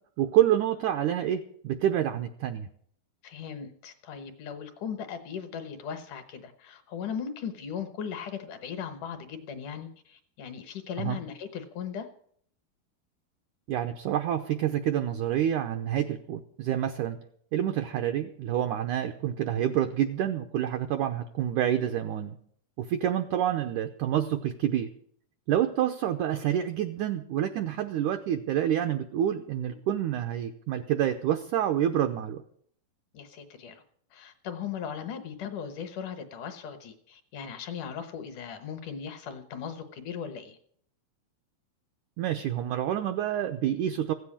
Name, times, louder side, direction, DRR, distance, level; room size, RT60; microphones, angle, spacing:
voice 1, 0.2-2.7 11.0-11.2 13.7-17.2 17.5-22.4 22.8-24.9 25.5-32.4 42.2-44.1, right 11 dB, 80° right, 6 dB, 1.8 m, -28 dB
voice 2, 3.2-12.1 33.1-33.8 34.1-40.6, left 7 dB, 65° left, 9 dB, 2.3 m, -38 dB
16.0 x 8.1 x 8.7 m, 0.62 s
omnidirectional pair, 4.5 m